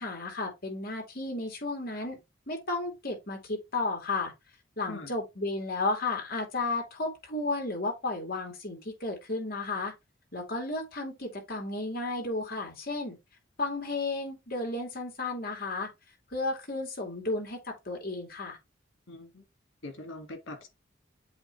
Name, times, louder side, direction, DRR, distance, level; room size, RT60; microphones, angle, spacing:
voice 1, 0.0-2.2 2.5-4.3 4.8-9.9 10.3-13.2 13.6-15.9 16.3-18.6, left 2 dB, 50° left, 2.7 m, -33 dB
voice 2, 19.1-19.4 19.8-20.7, left 2 dB, 80° left, 2.0 m, -42 dB
7.8 x 3.0 x 4.5 m
head